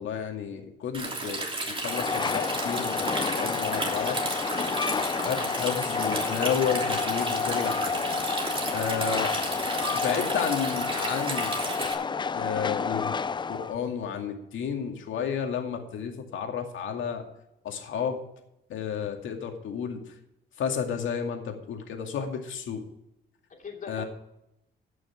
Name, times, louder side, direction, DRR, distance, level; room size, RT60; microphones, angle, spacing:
voice 1, 0.0-4.2 5.2-8.0 8.7-9.3 9.9-11.6 12.3-13.2 13.5-17.2 17.6-18.2 18.7-20.0 20.6-22.8 23.9-24.0, left 7 dB, 75° left, 4 dB, 2.3 m, -32 dB
Stream, 0.9-11.9, right 2 dB, 25° right, 3.3 m, -33 dB
Train, 1.8-13.8, left 5 dB, 25° left, 0.4 m, -30 dB
voice 2, 4.3-5.1 23.5-24.0, left 5 dB, 40° left, 1 dB, 2.9 m, -43 dB
15.5 x 6.4 x 6.0 m, 0.83 s
cardioid pair, 90°, 20 cm